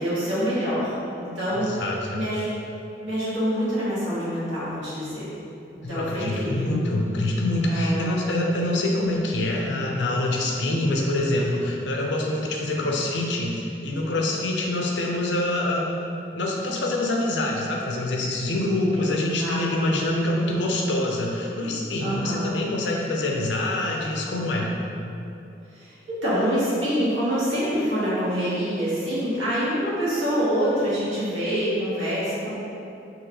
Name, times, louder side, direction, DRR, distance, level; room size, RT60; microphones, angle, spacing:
voice 1, 0.0-1.8 2.1-2.5 3.0-5.3 5.9-6.8 7.7-8.1 19.4-20.0 22.0-22.4 25.8-32.5, equal, 85° right, -10 dB, 1.4 m, -26 dB
voice 2, 1.5-2.2 5.8-15.9 16.3-24.7, left 1 dB, 75° left, -1 dB, 0.5 m, -25 dB
3.9 x 2.9 x 2.9 m, 2.7 s
head